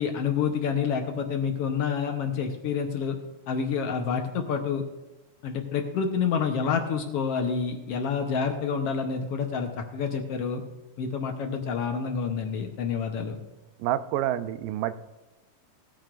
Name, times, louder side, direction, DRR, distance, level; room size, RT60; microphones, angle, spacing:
voice 1, 0.0-3.2 3.5-4.8 5.4-10.6 11.0-13.4, left 6 dB, 75° left, 4 dB, 1.4 m, -28 dB
voice 2, 13.8-15.0, right 12 dB, 90° right, 13 dB, 2.3 m, -28 dB
18.5 x 9.2 x 2.5 m, 1.1 s
omnidirectional pair, 3.8 m